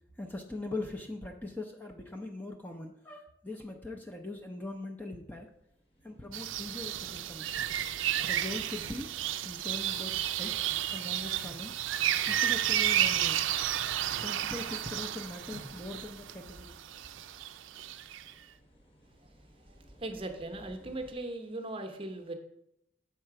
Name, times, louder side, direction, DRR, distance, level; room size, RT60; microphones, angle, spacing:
voice 1, 0.2-5.5 6.0-7.5 8.2-9.1 9.4-11.7 12.3-13.4 14.1-16.8, left 2 dB, 10° left, 2 dB, 0.5 m, -41 dB
sound 1, 5.4-21.1, equal, 30° left, 1.0 m, -58 dB
sound 2, 6.3-18.3, right 11 dB, 80° right, 0.4 m, -32 dB
Drum, 11.4-12.9 15.5-17.7, equal, 55° left, 1.9 m, -56 dB
voice 2, 20.0-22.3, right 2 dB, 30° right, 5 dB, 0.7 m, -38 dB
7.3 x 4.4 x 5.8 m, 0.77 s
head